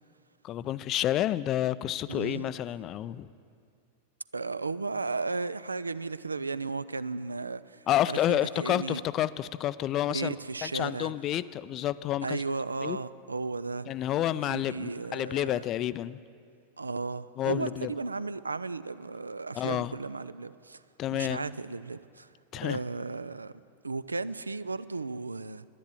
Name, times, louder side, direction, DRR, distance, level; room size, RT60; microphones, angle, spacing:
voice 1, 0.4-3.3 7.9-10.3 10.6-12.4 12.8-13.0 13.9-16.2 17.4-17.9 19.5-19.9 21.0-21.4 22.5-22.8, left 13 dB, 35° left, 17 dB, 0.3 m, -29 dB
voice 2, 2.1-2.5 4.3-9.0 10.1-11.1 12.2-13.9 14.3-15.7 16.8-20.8 21.1-22.3 22.6-23.5 23.8-25.7, right 3 dB, 80° right, 17 dB, 0.3 m, -35 dB
11.0 x 10.5 x 8.4 m, 2.3 s
figure-of-eight pair, 90°, 0 cm